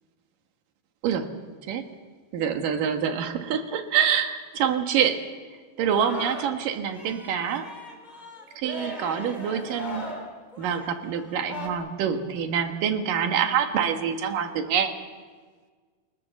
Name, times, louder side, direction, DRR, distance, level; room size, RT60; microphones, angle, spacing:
voice 1, 2.3-5.2 5.8-7.7 8.6-10.1 10.6-14.9, right 8 dB, 70° right, 6 dB, 3.1 m, -26 dB
Singing, 5.9-6.7 6.9-11.7, left 1 dB, 15° left, 2.5 m, -38 dB
28.5 x 18.0 x 7.2 m, 1.5 s
omnidirectional pair, 4.1 m